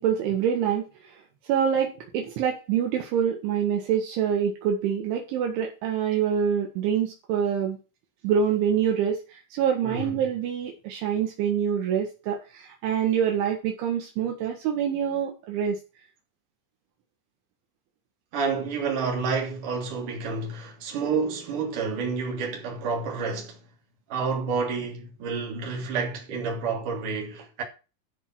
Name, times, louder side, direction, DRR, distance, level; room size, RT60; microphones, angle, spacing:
voice 1, 0.0-7.8 8.2-15.8, right 8 dB, 70° right, 3.9 m, -26 dB
voice 2, 9.8-10.2 18.3-23.6 24.1-27.6, right 5 dB, 45° right, 4.5 m, -29 dB
14.0 x 6.4 x 6.2 m
omnidirectional pair, 5.9 m